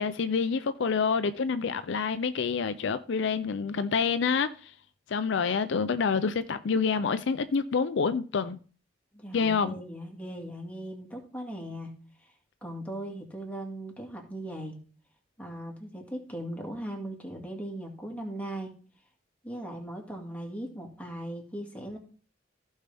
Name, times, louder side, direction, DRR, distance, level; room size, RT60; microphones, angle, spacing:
voice 1, 0.0-4.7 5.1-8.6 9.3-9.8, left 5 dB, 65° left, 0.5 m, -27 dB
voice 2, 9.1-11.9 12.6-14.8 15.4-18.7 19.4-22.0, right 1 dB, 10° left, 2.1 m, -38 dB
15.0 x 5.4 x 3.4 m
head